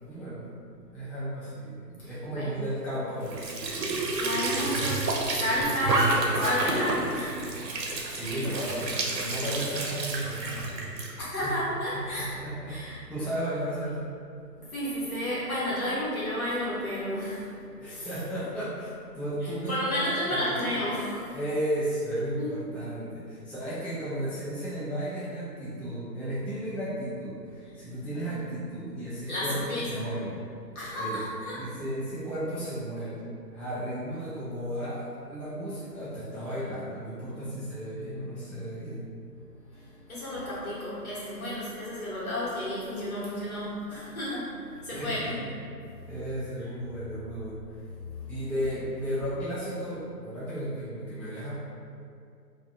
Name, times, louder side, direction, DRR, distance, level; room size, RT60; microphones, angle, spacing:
voice 1, 0.0-0.4 0.9-3.6 8.1-10.8 11.4-11.5 12.2-12.8 13.1-14.1 17.8-18.9 19.2-20.7 21.3-30.4 30.9-31.2 31.5-33.2 33.5-39.1 44.9-45.5 46.1-47.6 48.3-51.5, right 1 dB, 5° left, -11 dB, 0.3 m, -34 dB
voice 2, 2.0-2.5 4.1-7.4 11.2-12.3 12.7-13.0 14.6-17.5 17.8-18.1 19.7-21.4 22.4-22.6 29.3-30.1 30.7-31.7 40.1-44.5 44.8-45.3, equal, 60° left, -9 dB, 1.0 m, -31 dB
Squeak / Sink (filling or washing) / Trickle dribble, 3.2-11.1, right 2 dB, 85° right, 0.6 m, -30 dB
2.3 x 2.2 x 2.5 m, 2.4 s
figure-of-eight pair, 170°, 50 cm